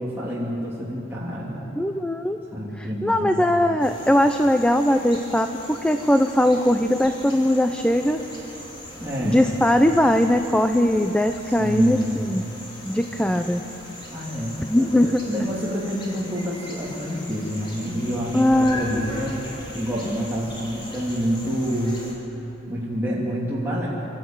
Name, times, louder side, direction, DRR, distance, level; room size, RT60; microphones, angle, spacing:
voice 1, 0.0-1.6 2.5-3.5 9.0-9.4 11.4-12.4 14.1-19.4 19.7-22.0 22.7-23.9, equal, 10° right, -8 dB, 2.9 m, -27 dB
voice 2, 1.8-2.4 2.8-8.2 9.2-12.4 12.9-13.6 14.6-15.5 18.3-19.0, left 1 dB, 5° left, 6 dB, 0.6 m, -20 dB
sound 1, 3.8-22.1, left 1 dB, 25° left, 3.9 m, -39 dB
26.5 x 14.0 x 9.0 m, 3.0 s
head